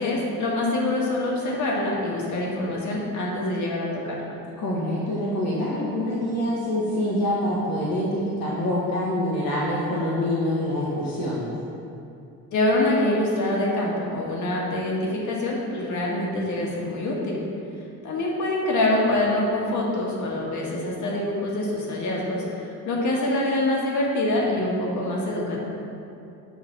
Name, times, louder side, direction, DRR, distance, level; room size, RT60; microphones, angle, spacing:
voice 1, 0.0-4.2 12.5-17.4 18.0-25.7, left 1 dB, 55° left, -3 dB, 1.7 m, -25 dB
voice 2, 4.6-11.5, left 1 dB, 70° left, -7 dB, 1.6 m, -25 dB
8.7 x 3.1 x 6.0 m, 2.7 s
cardioid pair, 115°, 35 cm